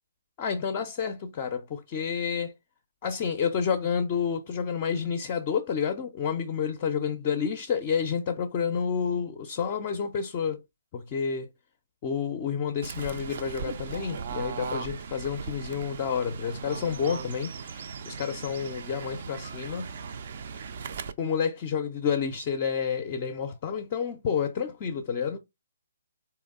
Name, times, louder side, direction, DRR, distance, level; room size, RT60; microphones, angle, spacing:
voice 1, 0.4-2.5 3.0-10.6 10.9-11.5 12.0-19.9 20.5-20.6 21.2-25.4, left 7 dB, 30° left, 0.4 m, -29 dB
Fowl / Bird, 12.8-21.1, right 6 dB, 45° right, 0.4 m, -38 dB
3.9 x 3.0 x 3.6 m
figure-of-eight pair, 135°, 0 cm